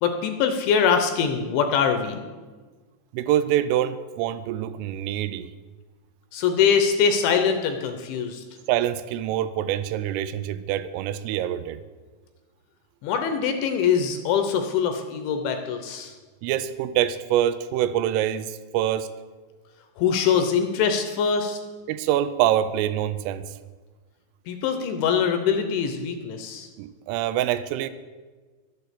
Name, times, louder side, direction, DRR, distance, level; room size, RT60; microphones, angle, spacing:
voice 1, 0.0-2.2 6.3-8.4 13.0-16.1 20.0-21.6 24.5-26.7, left 7 dB, 75° left, 6 dB, 2.9 m, -23 dB
voice 2, 3.1-5.5 8.7-11.8 16.4-19.1 21.9-23.5 26.8-27.9, right 11 dB, 85° right, 13 dB, 3.1 m, -25 dB
11.5 x 9.1 x 8.2 m, 1.4 s
omnidirectional pair, 6.0 m